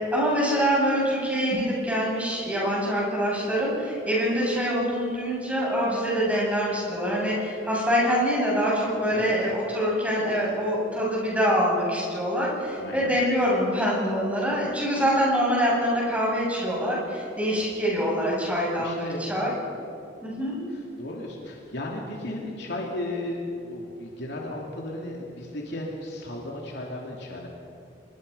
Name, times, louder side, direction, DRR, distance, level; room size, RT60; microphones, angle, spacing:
voice 1, 0.1-19.5 20.2-20.6, equal, 10° right, -5 dB, 7.9 m, -25 dB
voice 2, 12.8-13.1 18.8-19.3 20.7-27.5, left 1 dB, 60° left, -1 dB, 3.1 m, -35 dB
26.0 x 22.0 x 5.6 m, 2.6 s
head